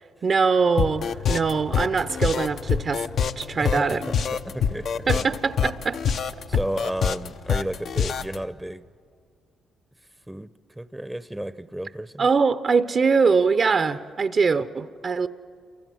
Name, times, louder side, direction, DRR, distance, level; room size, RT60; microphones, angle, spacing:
voice 1, 0.2-3.0 3.4-4.0 5.1-6.2 12.2-15.3, right 5 dB, 50° right, 12 dB, 0.7 m, -22 dB
sound 1, 0.8-8.4, left 7 dB, 65° left, 0.8 m, -25 dB
voice 2, 3.6-5.4 6.5-8.8 10.3-12.3, right 1 dB, 10° right, 14 dB, 0.7 m, -33 dB
28.0 x 23.5 x 7.8 m, 2.1 s
supercardioid pair, 65°, 0 cm